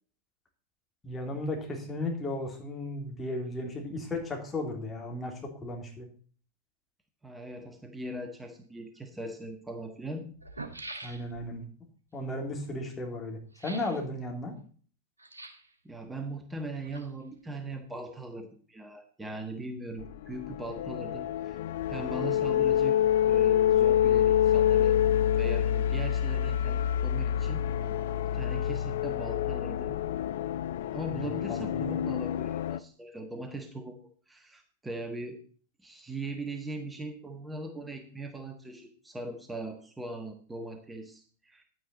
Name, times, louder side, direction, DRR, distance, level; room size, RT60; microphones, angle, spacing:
voice 1, 1.0-6.1 11.0-11.6 12.1-14.5 31.1-31.8, left 2 dB, 15° left, 1 dB, 3.3 m, -35 dB
voice 2, 7.2-10.3 10.9-11.1 15.8-21.6 21.9-23.0 23.3-25.0 25.4-27.7 28.3-30.0 30.9-34.0 34.3-35.4 35.8-41.6, right 2 dB, 10° right, 5 dB, 1.5 m, -40 dB
sound 1, 9.0-9.1 10.0-10.1 10.3-11.6 13.5-14.0 15.2-15.7 16.6-17.4 17.7-17.8, right 2 dB, 80° right, 1.4 m, -44 dB
sound 2, 20.0-32.8, left 10 dB, 55° left, 0.5 m, -27 dB
10.5 x 9.2 x 4.1 m, 0.43 s
figure-of-eight pair, 90°, 0 cm